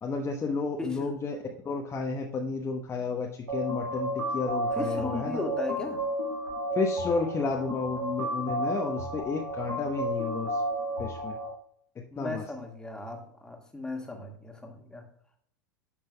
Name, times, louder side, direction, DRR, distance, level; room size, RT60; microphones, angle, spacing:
voice 1, 0.0-1.4 1.6-5.4 6.7-10.6 11.0-11.4 12.2-12.4, left 4 dB, 25° left, 1 dB, 1.0 m, -32 dB
voice 2, 0.8-1.1 4.7-6.0 12.1-15.0, left 2 dB, 5° left, 2 dB, 1.7 m, -36 dB
sound 1, 3.5-11.5, right 1 dB, 75° right, 2.2 m, -32 dB
12.0 x 6.0 x 2.2 m, 0.64 s
figure-of-eight pair, 85°, 11 cm